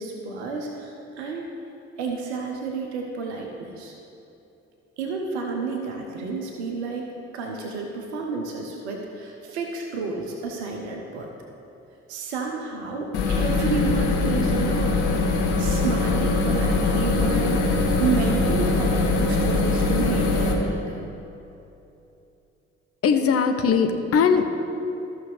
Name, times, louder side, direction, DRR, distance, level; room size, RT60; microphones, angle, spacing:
voice 1, 0.0-1.5 2.0-3.9 5.0-7.1 7.3-11.3 12.1-15.1 15.6-21.0, right 4 dB, 75° right, 1 dB, 0.9 m, -30 dB
sound 1, 13.1-20.5, left 3 dB, 65° left, 1.2 m, -22 dB
voice 2, 23.0-24.5, left 6 dB, 45° left, 5 dB, 0.9 m, -20 dB
14.0 x 6.1 x 3.4 m, 2.8 s
figure-of-eight pair, 45°, 33 cm